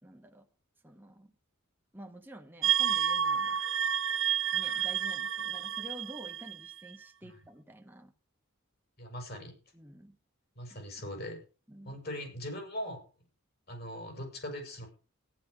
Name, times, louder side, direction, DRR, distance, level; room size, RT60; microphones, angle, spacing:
voice 1, 0.0-0.5 0.8-1.3 1.9-3.6 4.5-8.1 9.7-10.2 11.7-12.0, right 1 dB, 10° right, 1.4 m, -49 dB
sound 1, 2.6-7.0, right 9 dB, 60° right, 0.7 m, -30 dB
voice 2, 9.0-9.5 10.5-11.4 11.8-13.0 13.7-14.9, left 1 dB, 50° left, 6.8 m, -40 dB
14.5 x 11.5 x 5.0 m
head